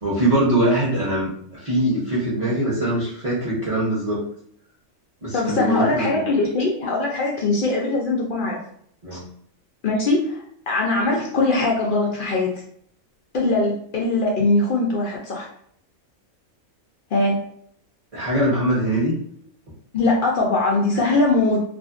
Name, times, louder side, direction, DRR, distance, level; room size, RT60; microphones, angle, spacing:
voice 1, 0.0-4.2 5.2-6.2 9.0-9.2 18.1-19.1, right 1 dB, 35° right, -8 dB, 0.6 m, -22 dB
voice 2, 5.3-8.6 9.8-12.5 13.3-15.5 17.1-17.4 19.9-21.6, left 2 dB, 80° left, -2 dB, 0.4 m, -21 dB
2.5 x 2.5 x 2.4 m, 0.66 s
omnidirectional pair, 1.4 m